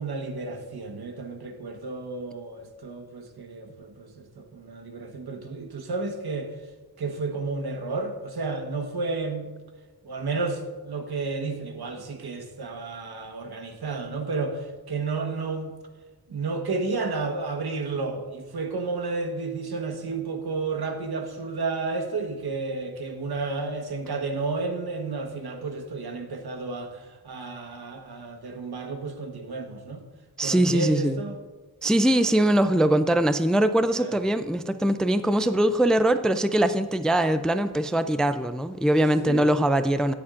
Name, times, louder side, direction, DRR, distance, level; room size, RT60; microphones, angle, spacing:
voice 1, 0.0-6.5 7.0-9.5 10.0-15.7 16.3-30.0 30.4-31.4 33.9-34.1 39.2-39.5, right 3 dB, 85° right, 4 dB, 1.3 m, -32 dB
voice 2, 30.4-31.2 31.8-40.1, right 1 dB, ahead, 10 dB, 0.3 m, -22 dB
20.0 x 7.1 x 2.5 m, 1.3 s
wide cardioid pair, 125°, 37 cm